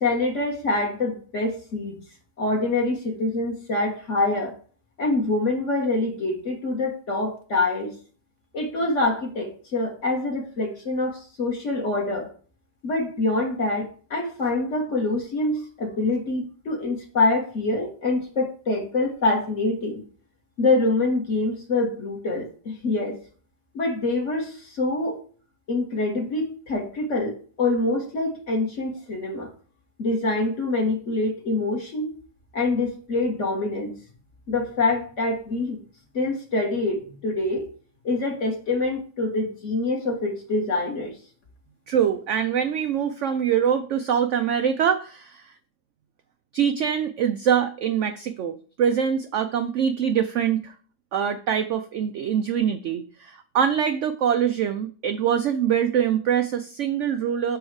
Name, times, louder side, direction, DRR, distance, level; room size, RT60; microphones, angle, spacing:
voice 1, 0.0-2.0 2.4-4.5 5.0-7.9 8.5-12.3 12.8-20.0 20.6-23.2 23.7-25.2 25.7-29.5 30.0-32.1 32.5-33.9 34.5-35.8 36.1-37.7 38.0-41.2, left 2 dB, 45° left, 1 dB, 1.8 m, -25 dB
voice 2, 41.9-45.5 46.5-50.7 51.1-57.6, right 8 dB, 80° right, 8 dB, 0.6 m, -24 dB
6.3 x 4.8 x 4.7 m, 0.41 s
omnidirectional pair, 1.8 m